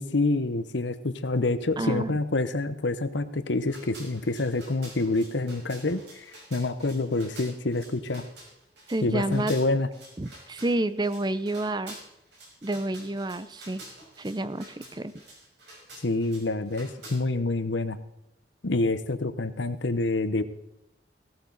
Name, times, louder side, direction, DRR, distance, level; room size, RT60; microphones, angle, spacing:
voice 1, 0.0-8.2 9.0-9.9 16.0-18.0 18.6-20.4, left 2 dB, 80° left, 11 dB, 1.0 m, -27 dB
voice 2, 1.8-2.1 8.9-9.5 10.2-12.0 12.6-13.8 14.2-15.1, right 2 dB, 25° right, 14 dB, 0.6 m, -29 dB
sound 1, 3.7-17.1, right 2 dB, 65° right, 5.8 m, -48 dB
17.0 x 13.0 x 4.1 m, 0.85 s
head